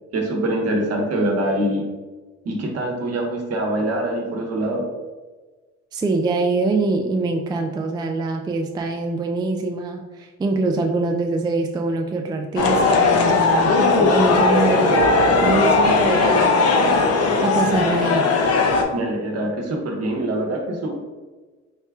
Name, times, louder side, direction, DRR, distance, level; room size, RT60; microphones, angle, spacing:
voice 1, 0.1-1.9 2.4-4.8 18.9-21.0, right 1 dB, 55° right, 1 dB, 1.0 m, -24 dB
voice 2, 5.9-15.0 15.4-17.0 17.4-18.3, right 3 dB, 15° right, 3 dB, 0.3 m, -24 dB
sound 1, 12.6-18.8, left 3 dB, 55° left, 0.6 m, -17 dB
4.2 x 2.3 x 3.4 m, 1.3 s
cardioid pair, 90°, 30 cm